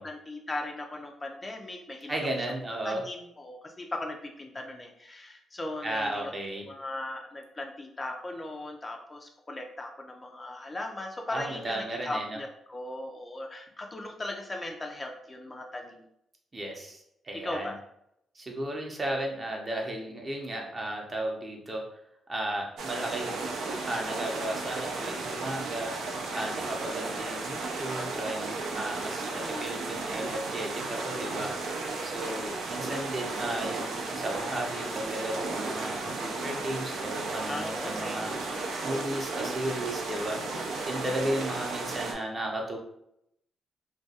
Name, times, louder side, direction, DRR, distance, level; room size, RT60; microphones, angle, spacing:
voice 1, 0.0-2.2 2.8-6.3 6.6-16.0 17.4-17.8 29.3-29.7 37.4-39.3 40.5-40.9, left 2 dB, 25° left, 2 dB, 0.3 m, -38 dB
voice 2, 2.1-3.0 5.8-6.7 11.3-12.4 16.5-17.7 18.4-21.8 22.3-23.4 23.9-26.0 26.3-31.7 32.0-38.3 38.8-40.5 40.9-42.8, right 1 dB, 30° right, 1 dB, 0.6 m, -34 dB
sound 1, 22.8-42.1, right 3 dB, 80° right, 0.4 m, -34 dB
2.3 x 2.2 x 2.7 m, 0.76 s
cardioid pair, 80°, 0 cm